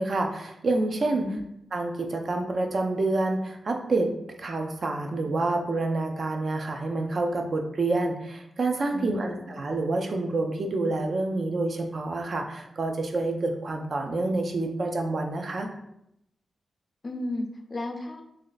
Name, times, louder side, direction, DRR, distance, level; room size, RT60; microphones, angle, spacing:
voice 1, 0.0-1.3 1.7-4.1 4.4-15.7, right 2 dB, 50° right, 3 dB, 0.5 m, -28 dB
voice 2, 1.1-1.4 8.9-9.5 17.0-18.2, left 2 dB, 35° left, 4 dB, 0.4 m, -34 dB
3.1 x 2.7 x 3.9 m, 0.80 s
wide cardioid pair, 115°, 0 cm